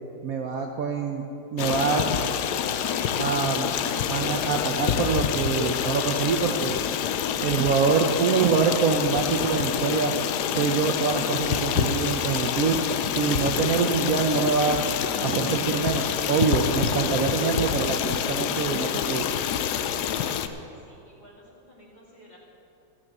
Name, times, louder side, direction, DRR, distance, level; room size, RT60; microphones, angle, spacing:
voice 1, 0.2-1.2 1.5-2.1 3.2-3.7 4.1-6.8 7.4-10.1 10.5-12.8 13.2-14.8 15.2-19.3, right 5 dB, 60° right, 3 dB, 1.0 m, -25 dB
Stream, 1.6-20.5, left 9 dB, 70° left, 1.1 m, -27 dB
voice 2, 20.4-22.4, equal, 20° left, -5 dB, 2.7 m, -53 dB
14.5 x 6.3 x 8.7 m, 2.8 s
omnidirectional pair, 2.0 m